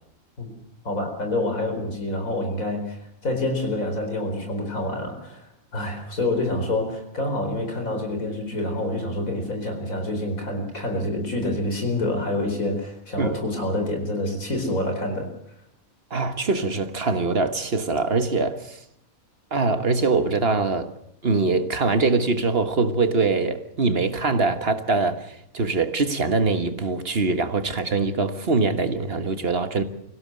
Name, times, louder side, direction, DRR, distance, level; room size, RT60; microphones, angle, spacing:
voice 1, 0.8-5.5 5.7-15.3, left 1 dB, 75° left, 4.9 m, -27 dB
voice 2, 16.1-18.8 19.5-20.9 21.2-29.8, right 3 dB, 45° right, 1.7 m, -23 dB
24.5 x 16.5 x 7.7 m
omnidirectional pair, 1.4 m